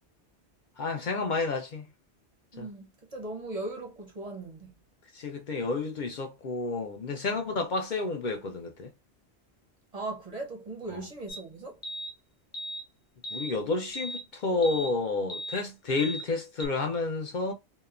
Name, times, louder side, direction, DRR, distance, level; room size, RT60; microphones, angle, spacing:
voice 1, 0.8-1.9 2.6-2.7 5.1-8.9 10.9-11.1 13.3-17.5, left 3 dB, 60° left, 0.5 m, -30 dB
voice 2, 2.5-4.8 9.9-11.8, right 2 dB, 45° right, 0.6 m, -38 dB
sound 1, 11.3-11.4 11.8-12.1 12.5-12.8 13.2-13.5 13.9-14.2 14.6-14.9 15.3-15.6 16.0-16.2 16.6-16.7, equal, 20° left, 0.6 m, -37 dB
2.7 x 2.1 x 2.4 m
omnidirectional pair, 1.1 m